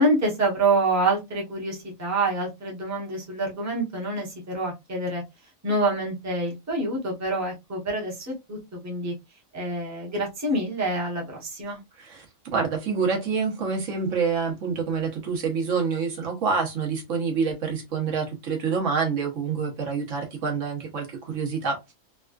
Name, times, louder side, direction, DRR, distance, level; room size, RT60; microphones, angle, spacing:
voice 1, 0.0-5.2 5.6-9.1 9.5-11.8, right 2 dB, 15° right, 0.8 m, -26 dB
voice 2, 12.0-21.9, right 5 dB, 70° right, 1.3 m, -27 dB
3.5 x 2.3 x 2.3 m
omnidirectional pair, 1.4 m